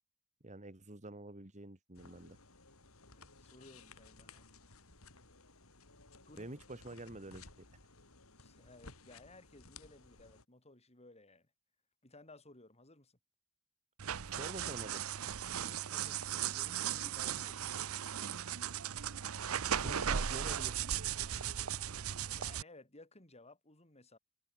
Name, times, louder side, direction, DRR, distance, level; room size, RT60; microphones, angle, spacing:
voice 1, 0.4-2.4 6.4-7.7 14.3-15.0 19.7-20.8, right 2 dB, 35° right, 2.3 m, -47 dB
sound 1, 2.0-10.4, left 3 dB, 85° left, 6.6 m, -58 dB
voice 2, 3.1-4.5 6.3-6.6 8.4-11.5 12.0-13.2 15.6-18.0 22.4-24.2, left 2 dB, 30° left, 5.3 m, -58 dB
sound 2, 14.0-22.6, right 9 dB, 80° right, 0.8 m, -37 dB
head